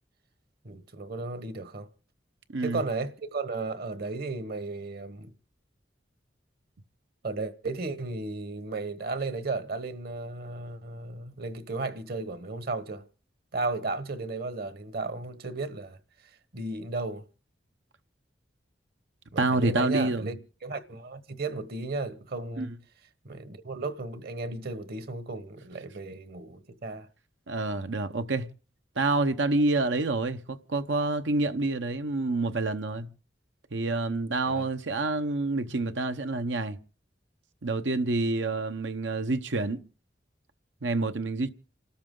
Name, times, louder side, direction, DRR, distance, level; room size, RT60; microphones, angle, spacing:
voice 1, 0.6-1.9 2.6-5.3 7.2-13.0 13.5-16.0 16.5-17.2 19.3-20.4 20.6-22.7 23.2-27.1 34.5-34.7, right 3 dB, 55° right, 1.2 m, -34 dB
voice 2, 19.4-20.3 22.6-22.7 27.5-28.5 29.0-33.1 33.7-36.8 37.6-39.8 40.8-41.5, right 2 dB, 85° right, 0.9 m, -28 dB
29.0 x 13.0 x 3.8 m
head